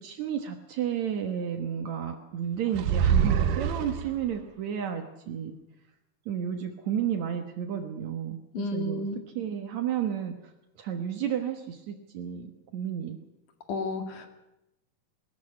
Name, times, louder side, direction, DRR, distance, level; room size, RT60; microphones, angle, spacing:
voice 1, 0.0-5.6 6.3-9.0 9.4-10.3 10.8-12.5 12.7-13.2, right 9 dB, 65° right, 5 dB, 2.6 m, -32 dB
sound 1, 2.7-4.4, right 8 dB, 85° right, 2.6 m, -25 dB
voice 2, 8.5-9.2 13.7-14.3, left 2 dB, 75° left, 5 dB, 3.7 m, -31 dB
20.5 x 14.0 x 9.7 m, 0.92 s
omnidirectional pair, 3.6 m